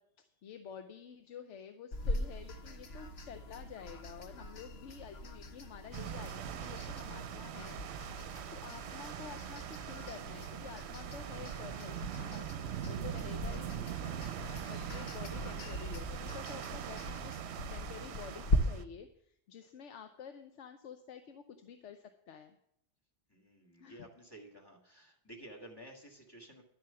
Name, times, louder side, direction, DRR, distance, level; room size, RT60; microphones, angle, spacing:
voice 1, 0.0-7.8 8.2-12.5 12.9-22.6 23.8-24.1, left 7 dB, 90° left, 8 dB, 1.1 m, -50 dB
sound 1, 1.9-18.6, left 1 dB, 65° left, 1.2 m, -41 dB
sound 2, 5.9-18.8, right 10 dB, 70° right, 0.9 m, -42 dB
voice 2, 23.3-26.6, right 1 dB, 20° left, 1 dB, 2.0 m, -53 dB
11.0 x 7.6 x 6.9 m, 0.75 s
omnidirectional pair, 1.2 m